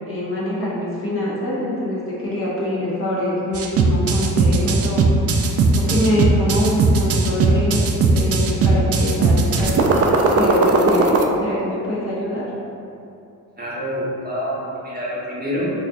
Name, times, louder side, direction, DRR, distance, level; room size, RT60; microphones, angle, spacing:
voice 1, 0.1-5.0 5.7-7.8 8.1-12.4, left 1 dB, 35° left, -8 dB, 0.9 m, -24 dB
sound 1, 3.5-11.2, right 4 dB, 40° right, 0.4 m, -17 dB
voice 2, 13.6-15.7, equal, 25° right, -7 dB, 1.1 m, -27 dB
4.2 x 2.4 x 2.6 m, 2.6 s
cardioid pair, 75°, 38 cm